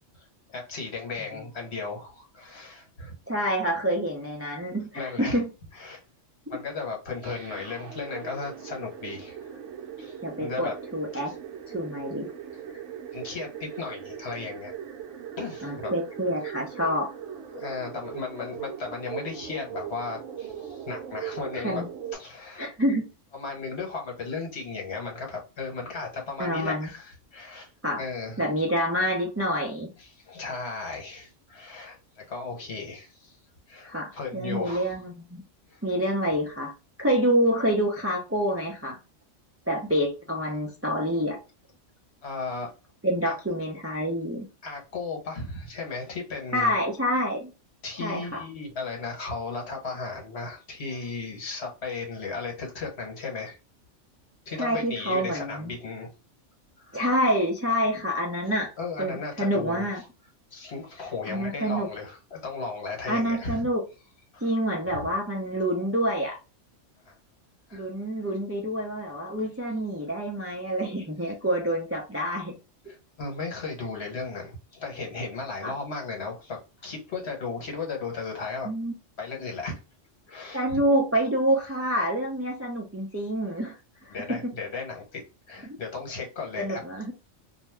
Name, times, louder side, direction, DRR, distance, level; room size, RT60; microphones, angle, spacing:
voice 1, 0.5-3.1 4.9-5.4 5.7-6.0 6.5-9.4 10.0-10.7 13.1-14.7 15.4-15.9 16.2-16.3 17.5-21.8 22.1-22.6 23.3-27.7 28.0-28.4 30.0-33.4 33.7-34.9 35.7-35.8 42.2-42.7 43.2-43.4 44.6-46.7 47.8-53.6 54.5-56.1 56.8-57.0 58.8-59.9 60.5-63.7 64.3-64.5 64.9-65.1 67.1-67.2 67.7-67.9 72.9-78.7 79.2-79.8 80.3-80.8 84.1-86.8, left 4 dB, 60° left, 1.3 m, -35 dB
voice 2, 3.3-5.5 10.2-11.3 11.7-12.3 15.6-17.1 21.5-21.9 22.6-23.0 26.4-26.9 27.8-28.0 28.4-29.9 33.8-35.4 35.8-36.7 37.0-39.0 39.7-41.4 43.0-44.5 46.5-47.5 48.0-48.4 54.6-55.7 56.9-58.7 59.0-60.0 61.3-61.9 63.1-63.8 64.4-66.4 67.7-72.5 75.6-75.7 78.6-78.9 80.5-83.8 84.0-84.5 85.6-85.8 86.6-87.1, equal, 20° right, 0.4 m, -27 dB
sound 1, 7.2-22.1, right 8 dB, 70° right, 1.0 m, -40 dB
2.7 x 2.2 x 3.3 m
omnidirectional pair, 1.3 m